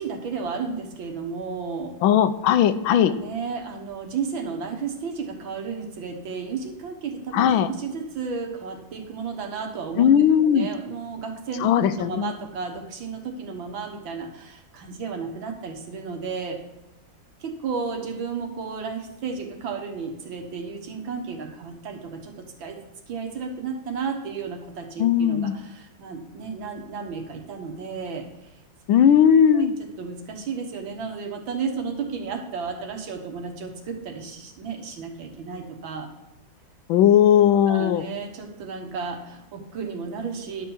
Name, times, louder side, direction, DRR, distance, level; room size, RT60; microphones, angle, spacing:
voice 1, 0.0-2.0 2.8-16.6 17.4-22.8 23.1-28.3 29.5-29.7 30.0-36.1 37.7-40.7, right 5 dB, 75° right, 4 dB, 2.1 m, -33 dB
voice 2, 2.0-3.2 7.3-7.7 10.0-10.7 11.6-12.3 25.0-25.5 28.9-29.8 36.9-38.0, left 9 dB, 85° left, 12 dB, 1.4 m, -18 dB
11.5 x 4.6 x 7.1 m, 1.0 s
omnidirectional pair, 2.2 m